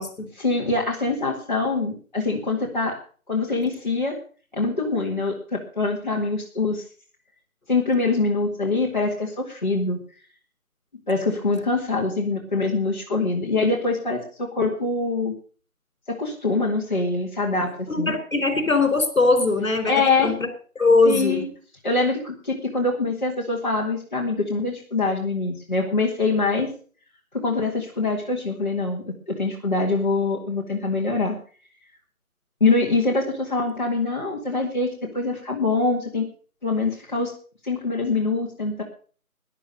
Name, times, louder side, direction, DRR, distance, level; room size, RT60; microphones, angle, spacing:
voice 1, 0.4-3.0 3.3-4.2 4.5-6.8 7.7-10.0 11.1-15.3 16.1-18.1 19.9-20.3 21.0-21.5 21.8-26.7 27.3-31.4 32.6-34.9 35.1-36.3 36.6-37.3 37.6-38.8, left 3 dB, 30° left, -4 dB, 2.1 m, -24 dB
voice 2, 17.9-19.9 20.2-20.5 20.8-21.4, left 3 dB, 60° left, 7 dB, 4.4 m, -20 dB
13.0 x 10.5 x 6.6 m, 0.41 s
figure-of-eight pair, 175°, 44 cm